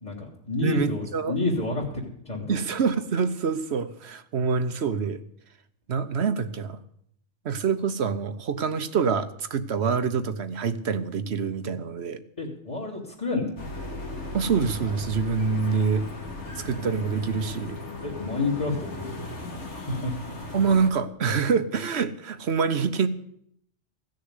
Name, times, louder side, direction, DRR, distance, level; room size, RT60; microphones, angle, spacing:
voice 1, 0.0-2.6 12.4-13.5 18.0-19.1 19.4-19.5 19.9-20.1, left 3 dB, 30° left, -2 dB, 2.4 m, -29 dB
voice 2, 0.6-1.4 2.5-5.2 5.9-6.8 7.4-12.2 14.3-16.0 16.6-17.7 20.5-23.1, right 5 dB, 70° right, 11 dB, 1.1 m, -26 dB
sound 1, 13.6-20.9, left 2 dB, 90° left, 2.4 m, -37 dB
16.0 x 6.6 x 9.6 m, 0.70 s
omnidirectional pair, 1.2 m